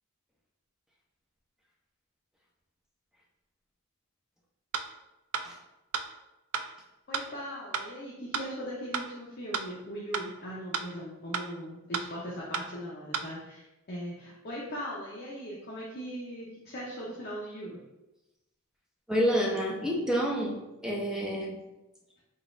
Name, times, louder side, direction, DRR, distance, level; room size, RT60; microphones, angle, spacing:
sound 1, 4.7-4.8 5.3-5.4 5.9-6.0 6.5-6.6 7.1-7.2 7.7-7.8 8.3-8.4 8.9-9.0 9.5-9.6 10.1-10.2 10.7-10.8 11.3-11.4 11.9-12.0 12.5-12.6 13.1-13.2, right 6 dB, 75° right, 0.3 m, -31 dB
voice 1, 7.1-17.8, equal, 45° left, -5 dB, 0.6 m, -39 dB
voice 2, 19.1-21.6, equal, 5° right, -2 dB, 0.5 m, -29 dB
4.0 x 2.4 x 3.6 m, 0.98 s
head